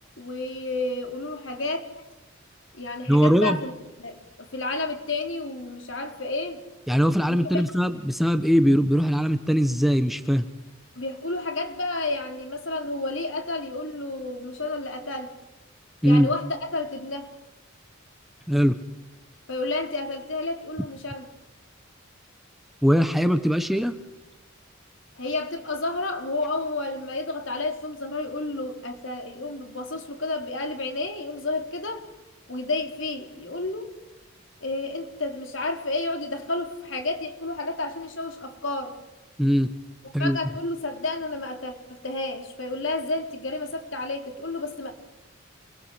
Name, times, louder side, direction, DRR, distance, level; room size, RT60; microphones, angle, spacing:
voice 1, 0.2-2.1 2.7-3.7 4.0-6.6 7.3-7.6 11.0-15.3 16.0-17.3 19.5-21.3 25.2-32.0 32.5-33.9 34.6-39.0 40.2-44.9, left 2 dB, 65° left, 4 dB, 4.0 m, -31 dB
voice 2, 3.1-3.6 6.9-10.5 16.0-16.3 18.5-18.8 22.8-24.0 39.4-39.7 40.1-40.4, equal, ahead, 9 dB, 1.1 m, -21 dB
28.5 x 22.0 x 7.9 m, 1.0 s
head